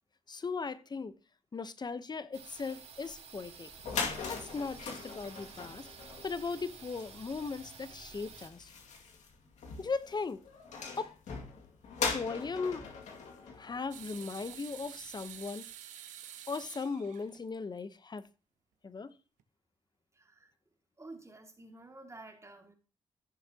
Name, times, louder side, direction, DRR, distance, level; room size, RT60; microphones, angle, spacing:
voice 1, 0.3-1.1 1.5-3.7 4.3-5.9 6.2-8.7 9.8-10.4 11.0-11.1 12.1-12.9 13.5-15.7 16.5-18.3 18.8-19.1, left 4 dB, 35° left, 0.9 m, -38 dB
sound 1, 2.3-8.5, right 6 dB, 60° right, 3.9 m, -51 dB
sound 2, 3.5-3.6 3.7-14.5, left 5 dB, 75° left, 2.3 m, -41 dB
sound 3, 13.9-17.8 18.2-18.3 19.4-19.5, right 10 dB, 90° right, 1.1 m, -48 dB
voice 2, 20.2-20.5 21.0-22.7, right 2 dB, 25° right, 2.3 m, -51 dB
15.5 x 6.7 x 2.9 m
cardioid pair, 65°, 12 cm